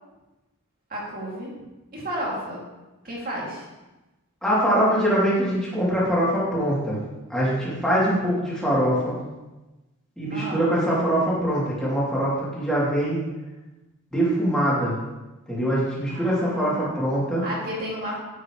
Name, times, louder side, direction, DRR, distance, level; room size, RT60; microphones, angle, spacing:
voice 1, 0.9-1.5 1.9-2.6 3.0-3.7 10.3-10.6 16.1-16.9 17.4-18.1, equal, 40° right, -4 dB, 2.5 m, -32 dB
voice 2, 4.4-7.0 7.3-9.1 10.2-13.2 14.1-15.0 15.5-17.4, equal, 5° left, -8 dB, 2.9 m, -23 dB
9.6 x 7.5 x 3.1 m, 1.1 s
head